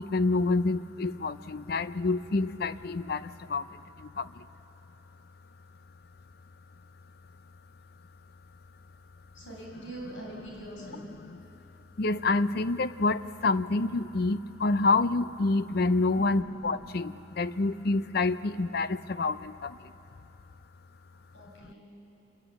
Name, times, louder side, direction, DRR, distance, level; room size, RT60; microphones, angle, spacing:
voice 1, 0.0-4.5 12.0-19.9, left 3 dB, 55° left, 14 dB, 0.6 m, -28 dB
voice 2, 9.3-11.0 16.1-16.2 21.1-21.8, right 1 dB, 80° left, -2 dB, 6.9 m, -43 dB
26.5 x 19.5 x 8.2 m, 3.0 s
head